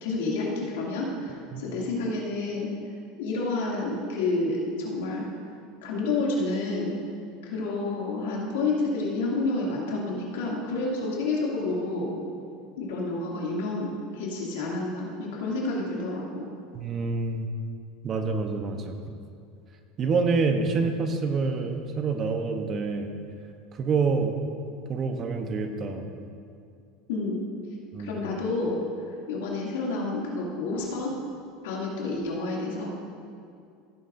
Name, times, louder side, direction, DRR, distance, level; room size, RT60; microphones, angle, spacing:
voice 1, 0.0-2.7 3.2-5.3 5.8-7.0 7.4-12.1 12.8-16.5 27.1-27.4 28.0-31.1 31.6-32.9, left 3 dB, 90° left, -3 dB, 2.6 m, -29 dB
voice 2, 16.7-17.5 18.0-18.9 20.0-23.1 23.7-24.4 24.9-26.1 27.9-28.2, right 4 dB, 35° right, 5 dB, 1.0 m, -27 dB
16.0 x 9.9 x 2.7 m, 2.4 s
supercardioid pair, 130°, 0 cm